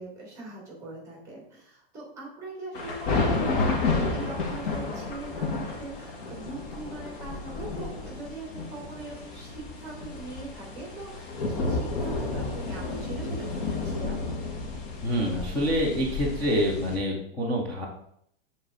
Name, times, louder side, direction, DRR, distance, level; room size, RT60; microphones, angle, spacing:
voice 1, 0.0-14.2, right 2 dB, 10° right, -2 dB, 2.3 m, -41 dB
sound 1, 2.7-17.0, left 3 dB, 55° left, 1.5 m, -31 dB
voice 2, 15.0-17.9, equal, 5° left, -6 dB, 0.3 m, -26 dB
6.9 x 3.9 x 3.7 m, 0.70 s
supercardioid pair, 170°, 32 cm